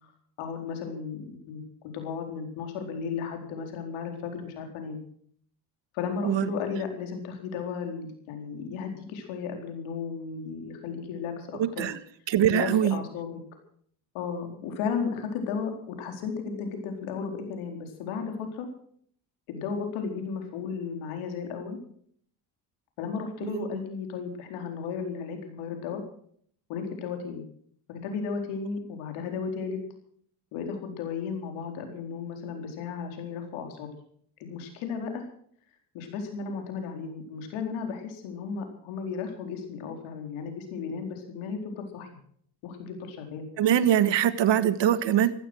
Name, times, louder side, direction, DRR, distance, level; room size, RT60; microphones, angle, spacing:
voice 1, 0.4-5.0 5.9-11.9 12.5-13.4 14.1-18.7 19.5-21.8 23.0-26.0 26.7-27.4 27.9-29.8 30.5-33.9 34.4-35.3 35.9-42.1 42.6-43.5, left 5 dB, 85° left, 4 dB, 4.5 m, -34 dB
voice 2, 11.6-12.0 12.3-13.0 43.6-45.3, right 10 dB, 65° right, 13 dB, 1.7 m, -22 dB
15.5 x 15.0 x 6.3 m, 0.62 s
supercardioid pair, 75°, 47 cm